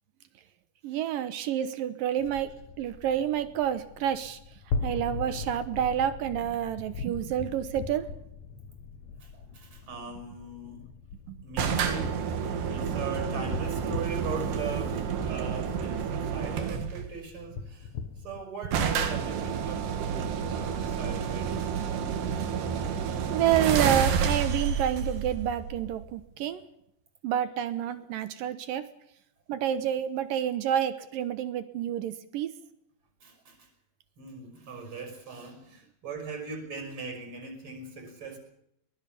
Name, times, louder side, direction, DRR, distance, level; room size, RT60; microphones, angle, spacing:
voice 1, 0.8-4.4 4.8-8.1 11.3-11.4 23.3-26.6 27.2-28.9 29.5-32.5, right 10 dB, 70° right, 11 dB, 2.5 m, -29 dB
sound 1, 2.2-18.4, left 5 dB, 60° left, 2.1 m, -40 dB
voice 2, 9.2-10.9 11.4-12.2 12.6-21.7 23.1-23.2 33.2-33.7 34.2-38.4, right 5 dB, 30° right, 4 dB, 6.2 m, -40 dB
sound 2, 11.6-17.1 18.1-18.2 18.4-18.5 18.7-26.2, right 6 dB, 90° right, 4.1 m, -30 dB
23.0 x 20.0 x 7.0 m, 0.78 s
omnidirectional pair, 4.6 m